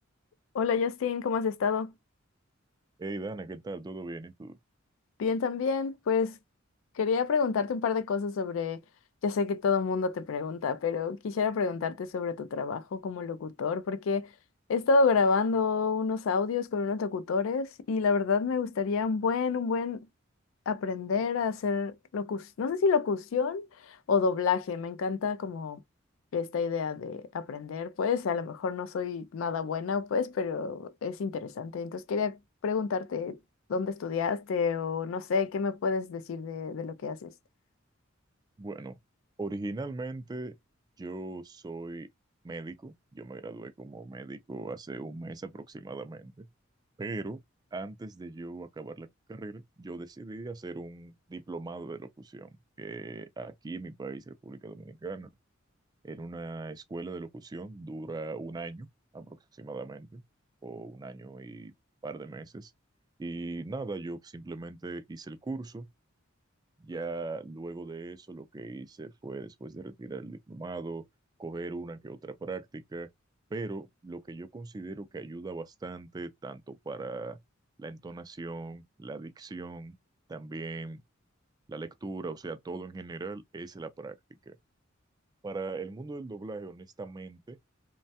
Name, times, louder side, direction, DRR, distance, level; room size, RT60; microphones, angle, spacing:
voice 1, 0.5-1.9 5.2-6.4 7.0-8.8 9.2-14.3 14.7-20.1 20.7-25.8 26.3-32.4 32.6-33.4 33.7-37.3, left 5 dB, 75° left, 0.4 m, -29 dB
voice 2, 3.0-4.6 38.6-39.0 39.4-40.5 41.0-42.1 42.4-46.5 47.0-47.4 47.7-52.5 52.8-55.3 56.0-58.9 59.1-60.2 60.6-61.7 62.0-62.7 63.2-65.9 66.8-71.0 71.4-73.1 73.5-77.4 77.8-80.0 80.3-81.0 81.7-84.2 84.5-84.6 85.4-87.6, right 3 dB, 20° right, 0.3 m, -39 dB
3.1 x 2.2 x 2.7 m
head